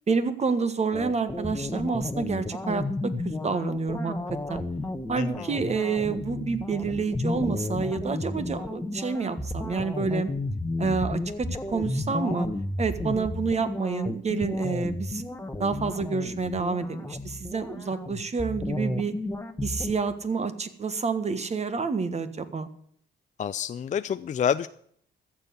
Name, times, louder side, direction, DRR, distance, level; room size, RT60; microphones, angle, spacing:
voice 1, 0.1-4.1 4.5-4.6 5.1-10.3 10.8-12.5 12.8-15.2 15.6-19.2 19.6-22.7, right 4 dB, 35° right, 11 dB, 1.4 m, -28 dB
sound 1, 0.9-19.9, left 2 dB, 10° left, 1.1 m, -32 dB
voice 2, 5.2-5.5 23.4-24.7, left 8 dB, 40° left, 11 dB, 0.4 m, -28 dB
14.0 x 7.4 x 8.1 m, 0.64 s
cardioid pair, 90°, 20 cm